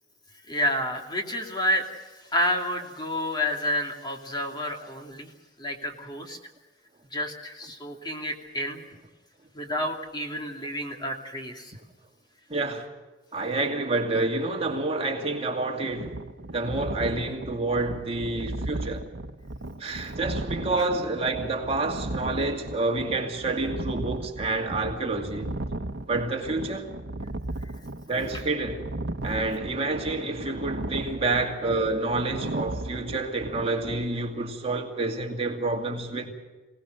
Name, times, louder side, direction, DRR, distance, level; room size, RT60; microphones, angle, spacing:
voice 1, 0.5-1.9 2.3-5.3 5.6-6.4 7.1-8.8 9.5-11.7 20.8-20.9, left 1 dB, 25° left, 2.7 m, -29 dB
voice 2, 12.5-12.9 13.3-16.2 16.5-19.0 19.8-25.5 26.1-26.9 28.1-28.9 29.2-36.3, right 2 dB, 35° right, 2.5 m, -28 dB
sound 1, 15.9-34.0, right 1 dB, 70° right, 1.0 m, -36 dB
26.5 x 18.5 x 6.5 m
head